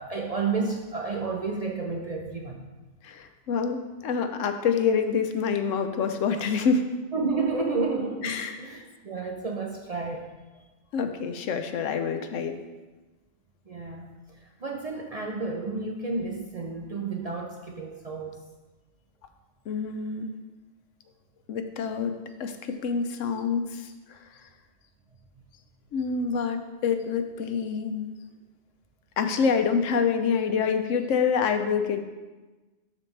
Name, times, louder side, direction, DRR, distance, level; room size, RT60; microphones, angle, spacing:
voice 1, 0.0-2.6 7.1-10.3 13.7-18.4, right 4 dB, 45° right, 0 dB, 0.5 m, -31 dB
voice 2, 3.0-6.9 8.2-8.6 10.9-12.6 19.7-20.3 21.5-24.2 25.9-28.1 29.2-32.0, left 6 dB, 85° left, 7 dB, 1.0 m, -27 dB
12.5 x 4.2 x 3.3 m, 1.2 s
omnidirectional pair, 1.3 m